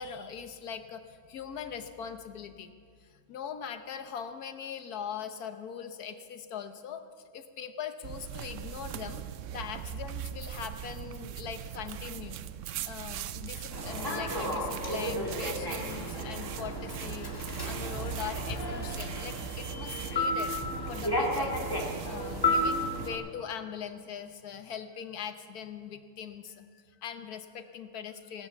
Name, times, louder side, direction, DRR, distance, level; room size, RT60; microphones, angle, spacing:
voice 1, 0.0-2.7 3.0-7.0 7.3-12.4 12.8-20.6 20.9-21.6 22.0-28.5, left 7 dB, 65° left, 8 dB, 1.4 m, -41 dB
sound 1, 8.0-23.1, right 10 dB, 80° right, 0.6 m, -40 dB
Human voice / Subway metro underground, 13.7-23.1, left 1 dB, 15° left, 2.0 m, -33 dB
18.5 x 11.0 x 7.1 m, 2.1 s
omnidirectional pair, 1.8 m